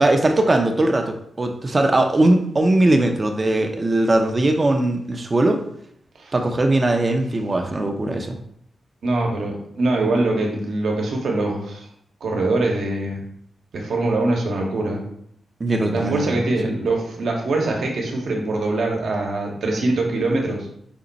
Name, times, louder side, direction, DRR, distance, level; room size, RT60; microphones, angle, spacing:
voice 1, 0.0-5.6 6.3-8.4 15.6-16.4 16.6-16.7, right 2 dB, 35° right, 4 dB, 0.6 m, -20 dB
voice 2, 9.0-11.9 12.2-13.2 13.7-15.0 15.9-20.7, right 2 dB, 75° right, 0 dB, 1.0 m, -23 dB
5.1 x 2.2 x 3.9 m, 0.70 s
cardioid pair, 60°, 0 cm